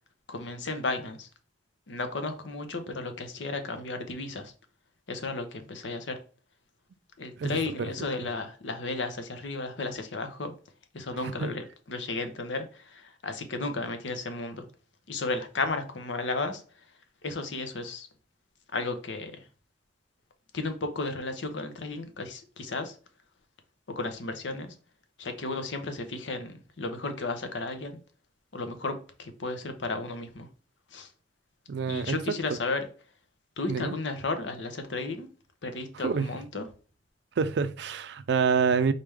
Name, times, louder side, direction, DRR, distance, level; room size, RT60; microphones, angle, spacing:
voice 1, 0.3-1.3 1.9-4.5 5.1-6.2 7.2-10.5 10.9-14.7 15.1-16.8 17.2-18.1 18.7-19.5 20.5-23.0 23.9-24.7 25.2-28.0 28.5-30.5 30.9-31.1 31.9-32.9 33.6-35.3 35.6-36.7, left 3 dB, 80° left, 0.8 m, -34 dB
voice 2, 7.4-7.9 11.4-11.5 31.7-32.4 33.7-34.0 36.0-36.3 37.4-38.9, right 5 dB, 65° right, 0.4 m, -27 dB
4.0 x 3.2 x 3.5 m
head